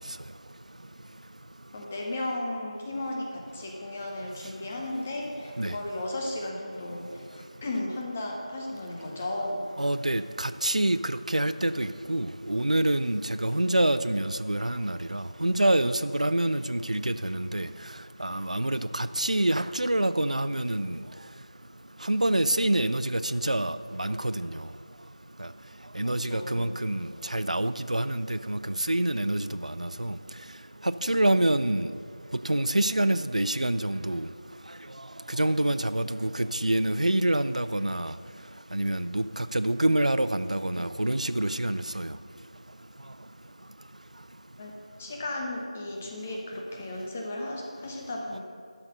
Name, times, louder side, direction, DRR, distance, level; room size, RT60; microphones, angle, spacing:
voice 1, 1.7-9.7 26.0-26.8 44.6-48.4, left 1 dB, 15° left, -1 dB, 0.7 m, -35 dB
voice 2, 9.8-17.7 18.2-21.0 22.1-24.5 25.4-25.5 26.0-30.2 31.0-31.9 32.4-34.3 35.3-38.1 38.7-42.1, right 1 dB, 70° right, 13 dB, 0.4 m, -26 dB
12.0 x 5.8 x 6.5 m, 2.2 s
figure-of-eight pair, 170°, 4 cm